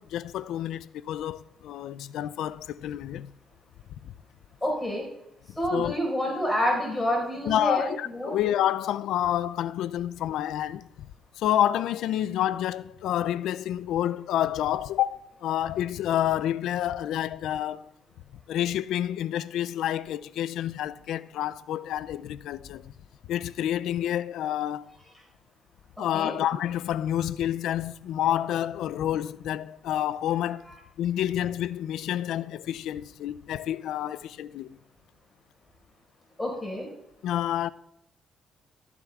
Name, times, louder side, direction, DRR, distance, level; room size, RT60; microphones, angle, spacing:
voice 1, 0.0-3.3 4.0-4.1 5.7-6.0 7.5-11.1 11.4-17.9 18.5-22.9 23.3-25.0 26.0-30.7 31.0-34.8 37.2-37.7, left 11 dB, 85° left, 0.3 m, -29 dB
voice 2, 4.6-5.0 5.6-8.3 26.1-26.3 36.4-36.9, equal, 10° left, 4.7 m, -28 dB
14.5 x 13.0 x 2.4 m
cardioid pair, 90°, 0 cm